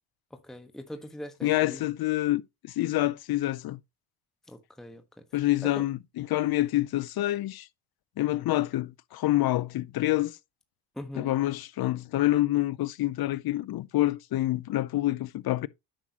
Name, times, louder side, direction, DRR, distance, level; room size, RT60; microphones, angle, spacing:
voice 1, 0.3-1.8 4.5-5.8 10.9-11.3, left 1 dB, ahead, 1.1 m, -42 dB
voice 2, 1.4-3.8 5.3-7.7 8.2-10.4 11.2-15.7, left 16 dB, 50° left, 0.6 m, -27 dB
10.0 x 6.2 x 2.8 m
supercardioid pair, 70°, 49 cm